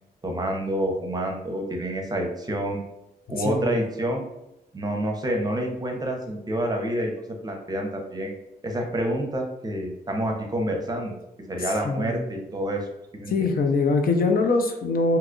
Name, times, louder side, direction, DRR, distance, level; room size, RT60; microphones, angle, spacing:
voice 1, 0.2-2.8 3.3-4.2 4.7-8.3 8.6-11.2 11.5-12.9 13.1-13.5, right 1 dB, 25° right, 2 dB, 0.6 m, -28 dB
voice 2, 3.4-3.7 11.6-12.2 13.3-15.2, left 3 dB, 65° left, 4 dB, 0.5 m, -23 dB
2.9 x 2.3 x 3.7 m, 0.85 s
wide cardioid pair, 110°, 16 cm